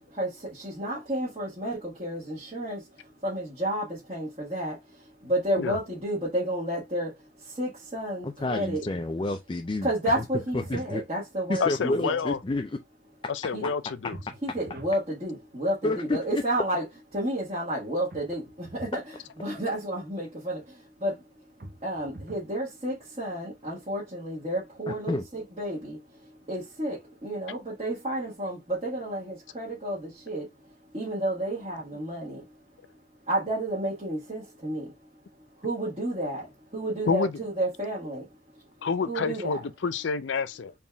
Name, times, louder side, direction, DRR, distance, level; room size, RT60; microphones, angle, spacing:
voice 1, 0.2-2.8 3.2-4.8 5.2-7.1 7.6-8.8 9.8-12.2 13.5-13.6 14.4-16.8 17.1-19.0 19.4-20.6 21.0-21.1 21.8-26.0 26.5-30.4 30.9-32.4 33.3-34.9 35.6-36.5 36.7-38.2 39.1-39.6, right 1 dB, 35° right, 1.6 m, -31 dB
voice 2, 8.2-9.9 10.2-10.3 10.5-11.0 11.5-12.8 15.8-16.4 24.9-25.3, left 2 dB, 25° left, 0.4 m, -29 dB
sound 1, 10.0-11.0 14.1-15.0 18.1-19.0 21.6-22.5, right 1 dB, 50° right, 0.7 m, -44 dB
voice 3, 11.6-12.4 13.3-14.2 37.1-37.4 38.8-40.7, left 5 dB, 85° left, 0.5 m, -28 dB
4.3 x 3.5 x 2.2 m
head